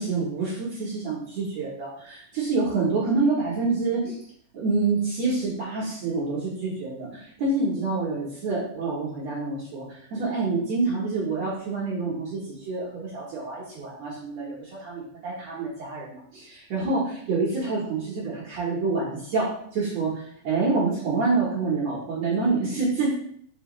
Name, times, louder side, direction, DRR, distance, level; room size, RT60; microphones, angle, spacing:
voice 1, 0.0-4.2 4.5-23.1, right 3 dB, 65° right, -8 dB, 2.1 m, -27 dB
5.8 x 3.0 x 3.0 m, 0.64 s
omnidirectional pair, 3.7 m